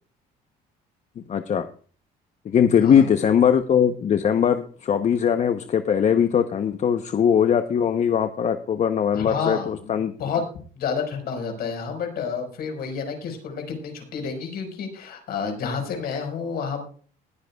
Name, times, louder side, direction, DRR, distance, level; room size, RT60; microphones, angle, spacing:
voice 1, 1.3-1.7 2.4-10.1, left 8 dB, 45° left, 9 dB, 0.9 m, -20 dB
voice 2, 9.1-10.4 10.7-16.8, left 6 dB, 65° left, 5 dB, 4.9 m, -30 dB
20.0 x 9.5 x 2.3 m, 0.42 s
cardioid pair, 110°, 17 cm